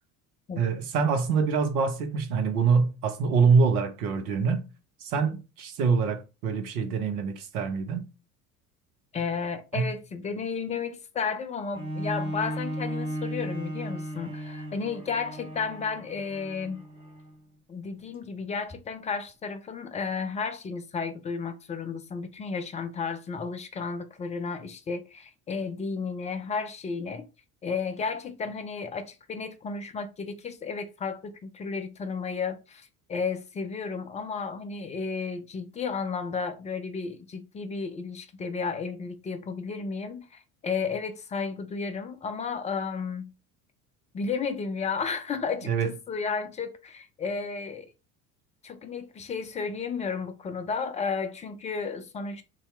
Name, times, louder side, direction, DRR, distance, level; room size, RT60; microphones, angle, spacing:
voice 1, 0.6-4.7 5.0-8.1 9.7-9.9 45.6-45.9, right 5 dB, 70° right, 0.8 m, -25 dB
voice 2, 9.1-16.8 17.7-27.3 27.6-43.3 44.1-47.9 48.6-52.4, left 5 dB, 15° left, 0.4 m, -33 dB
Bowed string instrument, 11.7-17.4 18.0-18.1, right 1 dB, 10° right, 0.9 m, -36 dB
2.7 x 2.3 x 3.1 m
figure-of-eight pair, 65°, 45 cm